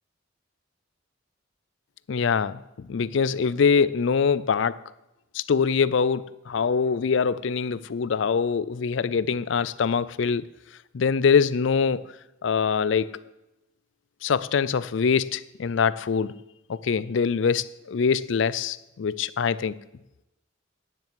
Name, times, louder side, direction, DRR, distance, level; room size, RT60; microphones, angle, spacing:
voice 1, 2.1-4.8 5.3-10.4 10.9-12.1 12.4-13.3 14.2-16.3 16.7-19.7, left 6 dB, 70° left, 0.4 m, -24 dB
9.8 x 7.6 x 7.6 m
head